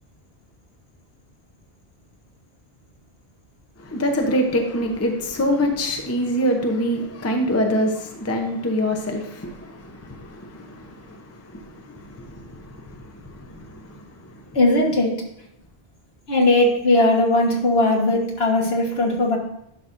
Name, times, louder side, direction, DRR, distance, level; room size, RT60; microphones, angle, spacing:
voice 1, 3.8-14.4, equal, 15° left, 0.7 m, -25 dB
voice 2, 14.5-15.2 16.3-19.4, left 2 dB, 65° left, 1.7 m, -18 dB
11.0 x 6.0 x 2.6 m
omnidirectional pair, 1.1 m